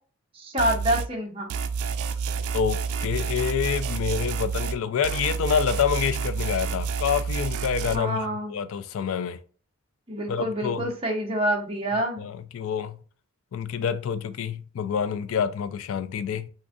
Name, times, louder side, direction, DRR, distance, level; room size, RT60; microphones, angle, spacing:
voice 1, 0.3-1.5 7.9-8.5 10.1-12.2, equal, 25° right, 0.7 m, -27 dB
sound 1, 0.6-1.1 1.5-4.8 5.0-8.0, right 5 dB, 85° right, 0.4 m, -29 dB
voice 2, 2.5-9.4 10.3-10.9 12.2-13.0 13.5-16.5, left 7 dB, 65° left, 0.3 m, -27 dB
3.7 x 2.5 x 2.4 m
head